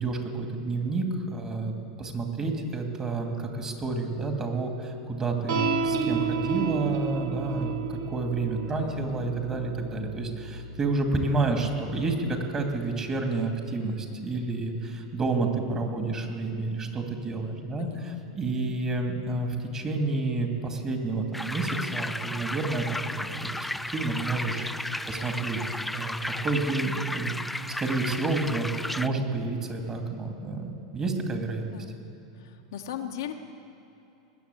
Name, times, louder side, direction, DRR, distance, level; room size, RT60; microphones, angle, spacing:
voice 1, 0.0-17.9 18.3-24.7 25.1-27.4 27.8-28.7 29.0-31.7, right 3 dB, 25° right, 3 dB, 2.4 m, -30 dB
sound 1, 5.5-12.1, right 5 dB, 70° right, 1.0 m, -32 dB
voice 2, 17.8-18.2 31.7-31.9 32.3-33.3, left 9 dB, 70° left, 4 dB, 1.1 m, -37 dB
sound 2, 21.3-29.1, left 1 dB, 5° left, 0.4 m, -34 dB
20.5 x 7.1 x 8.4 m, 2.9 s
hypercardioid pair, 95°, 2 cm